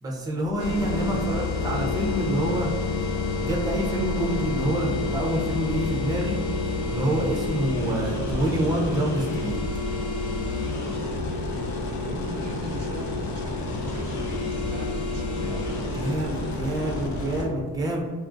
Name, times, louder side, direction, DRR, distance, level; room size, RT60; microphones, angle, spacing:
voice 1, 0.0-2.7 3.4-6.4 6.9-9.6 15.9-18.0, right 1 dB, 15° right, -2 dB, 0.5 m, -27 dB
sound 1, 0.6-17.4, left 3 dB, 65° left, 0.6 m, -29 dB
voice 2, 1.0-1.4 7.8-8.1 12.0-15.9, right 1 dB, 80° right, 1 dB, 0.6 m, -40 dB
2.9 x 2.3 x 2.5 m, 1.5 s
cardioid pair, 90°, 30 cm